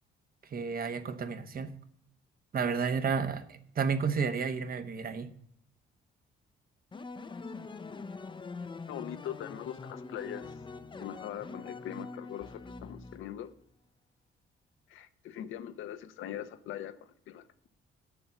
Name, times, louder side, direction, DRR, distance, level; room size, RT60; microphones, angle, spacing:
voice 1, 0.5-1.7 2.5-5.3, right 5 dB, 45° right, 9 dB, 1.1 m, -31 dB
sound 1, 6.9-13.6, left 3 dB, 25° left, 0.6 m, -44 dB
voice 2, 8.9-10.6 11.0-13.5 14.9-17.7, left 11 dB, 85° left, 11 dB, 0.8 m, -41 dB
7.0 x 7.0 x 8.1 m, 0.65 s
cardioid pair, 90°, 20 cm